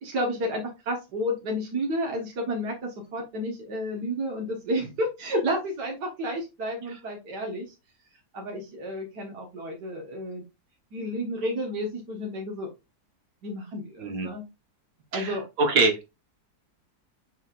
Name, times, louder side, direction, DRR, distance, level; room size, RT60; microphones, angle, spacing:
voice 1, 0.0-7.7 8.3-10.4 10.9-12.7 13.4-14.4 15.1-15.4, equal, 75° right, 0 dB, 2.1 m, -31 dB
voice 2, 14.0-14.3 15.1-16.1, right 3 dB, 60° right, 5 dB, 1.7 m, -24 dB
6.5 x 6.3 x 2.5 m, 0.25 s
omnidirectional pair, 1.8 m